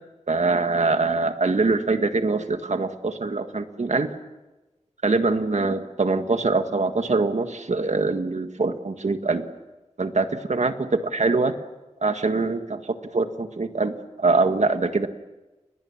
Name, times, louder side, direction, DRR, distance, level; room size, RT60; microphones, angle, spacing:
voice 1, 0.3-4.1 5.0-9.5 10.0-11.5 12.0-15.1, right 3 dB, 70° right, 8 dB, 1.8 m, -23 dB
30.0 x 21.5 x 7.3 m, 1.1 s
wide cardioid pair, 60°, 12 cm